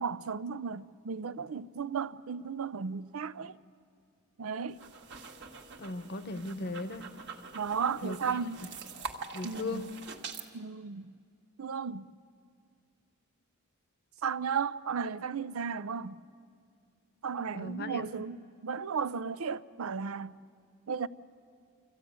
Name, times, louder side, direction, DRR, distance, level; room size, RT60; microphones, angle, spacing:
voice 1, 0.0-3.6 4.4-4.8 7.5-8.7 9.4-9.9 10.5-11.1 11.6-12.1 14.2-16.2 17.2-20.4 20.9-21.1, right 6 dB, 70° right, 0.5 m, -35 dB
sound 1, 4.7-10.5, right 5 dB, 55° right, 1.6 m, -45 dB
voice 2, 5.8-7.1 8.0-8.2 9.3-9.9 17.5-18.2, left 2 dB, 50° left, 0.9 m, -37 dB
25.5 x 15.0 x 9.3 m
head